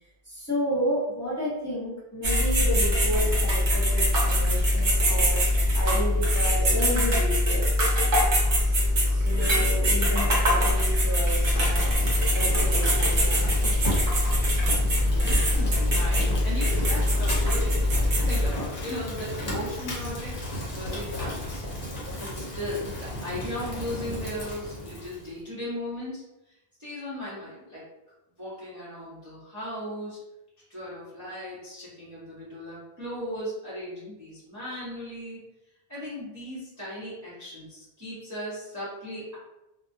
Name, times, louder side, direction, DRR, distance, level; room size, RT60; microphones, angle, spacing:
voice 1, 0.2-7.7 9.0-12.0 12.3-13.5 15.4-16.0, equal, 15° left, -10 dB, 0.9 m, -32 dB
sound 1, 2.2-18.5, left 1 dB, 55° right, 0.8 m, -23 dB
Fire, 11.0-25.3, left 1 dB, 60° left, 0.8 m, -35 dB
voice 2, 14.8-20.4 20.7-21.6 22.2-26.2 26.8-27.9 28.3-30.2 30.7-35.4 35.9-39.4, left 1 dB, 20° right, -10 dB, 0.7 m, -37 dB
2.2 x 2.2 x 2.6 m, 0.90 s
omnidirectional pair, 1.0 m